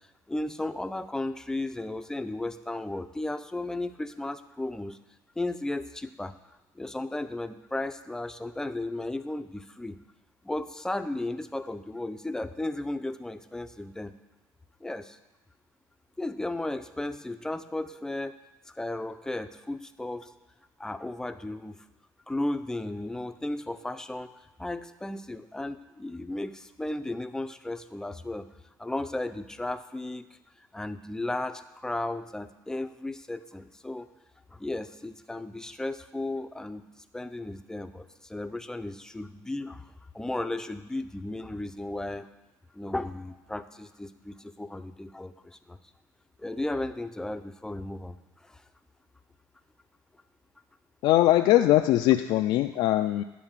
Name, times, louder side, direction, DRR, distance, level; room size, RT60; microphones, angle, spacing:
voice 1, 0.3-5.0 5.4-6.3 6.8-10.0 10.4-14.1 14.8-15.2 16.2-18.3 18.7-20.3 20.8-21.8 22.3-24.3 24.6-28.5 28.8-30.3 30.7-34.1 34.5-36.8 37.1-42.3 42.7-45.8 46.4-48.2 48.4-48.6, left 2 dB, 5° left, 10 dB, 0.5 m, -34 dB
voice 2, 51.0-53.2, left 14 dB, 65° left, 7 dB, 0.4 m, -21 dB
10.5 x 4.4 x 7.3 m, 1.0 s
cardioid pair, 105°, 9 cm